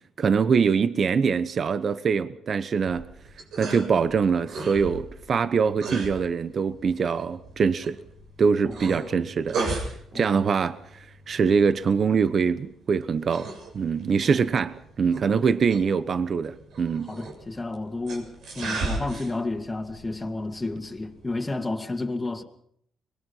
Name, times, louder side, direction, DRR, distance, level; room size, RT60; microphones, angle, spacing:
voice 1, 0.2-3.1 3.6-8.0 8.4-9.6 10.1-17.1, right 6 dB, 50° right, 1.0 m, -24 dB
sound 1, 2.8-21.5, right 3 dB, 70° right, 7.2 m, -37 dB
voice 2, 8.6-9.0 10.1-10.4 14.2-14.5 15.3-15.6 17.0-22.4, left 2 dB, 15° left, 2.4 m, -32 dB
24.5 x 21.5 x 5.7 m
cardioid pair, 90°, 0 cm